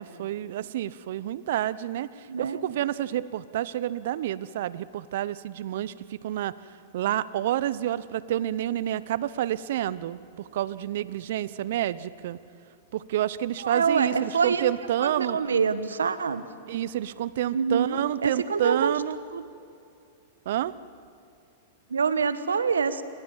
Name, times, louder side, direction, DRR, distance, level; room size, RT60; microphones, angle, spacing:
voice 1, 0.0-2.1 2.4-6.5 6.9-10.2 10.5-12.4 12.9-15.4 16.7-19.2 20.5-20.7, right 12 dB, 65° right, 18 dB, 0.9 m, -29 dB
voice 2, 2.3-2.6 13.6-14.6 15.0-16.4 17.5-18.9 19.3-19.4 21.9-23.0, right 5 dB, 90° right, 13 dB, 1.3 m, -26 dB
28.5 x 22.5 x 7.4 m, 2.6 s
hypercardioid pair, 110°, 0 cm